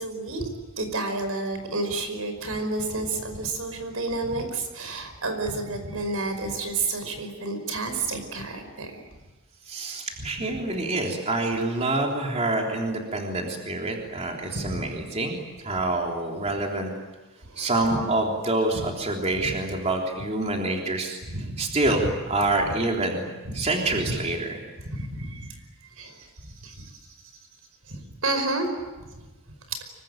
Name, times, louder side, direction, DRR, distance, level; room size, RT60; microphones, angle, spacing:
voice 1, 0.0-9.0 10.2-10.3 14.6-14.8 17.4-18.0 18.8-18.9 19.4-19.6 21.3-21.6 22.6-22.7 23.5-23.7 24.0-24.1 24.9-25.6 26.0-26.3 26.6-26.9 27.9-28.8 29.7-29.8, right 2 dB, 75° right, 7 dB, 5.2 m, -30 dB
voice 2, 9.7-16.9 17.6-23.3 23.5-24.6, right 2 dB, 30° right, 0 dB, 3.5 m, -27 dB
26.0 x 23.5 x 9.2 m, 1.2 s
head